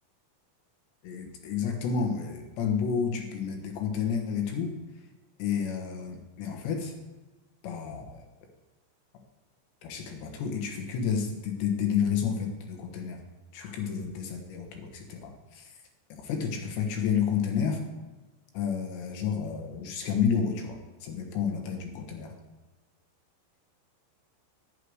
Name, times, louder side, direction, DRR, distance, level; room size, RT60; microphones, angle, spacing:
voice 1, 1.0-4.7 5.4-6.9 7.6-8.2 9.8-13.2 13.5-15.7 16.1-17.8 18.5-22.3, left 7 dB, 70° left, 3 dB, 3.2 m, -30 dB
11.5 x 10.0 x 4.8 m, 1.2 s
omnidirectional pair, 5.8 m